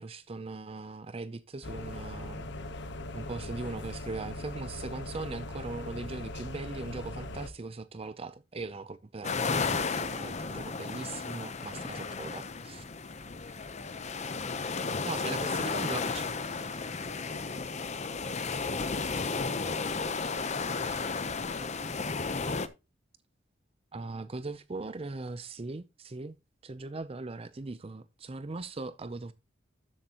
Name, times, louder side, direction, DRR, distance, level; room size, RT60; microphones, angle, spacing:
voice 1, 0.0-2.5 3.1-12.8 15.1-16.3 23.9-26.4 26.6-29.3, right 3 dB, 30° right, 0.5 m, -40 dB
sound 1, 1.6-7.5, left 1 dB, 65° left, 1.0 m, -40 dB
sound 2, 9.2-22.7, left 4 dB, 35° left, 0.8 m, -33 dB
voice 2, 13.1-15.6 16.5-21.8, right 3 dB, 85° right, 2.1 m, -56 dB
13.0 x 7.6 x 2.9 m
head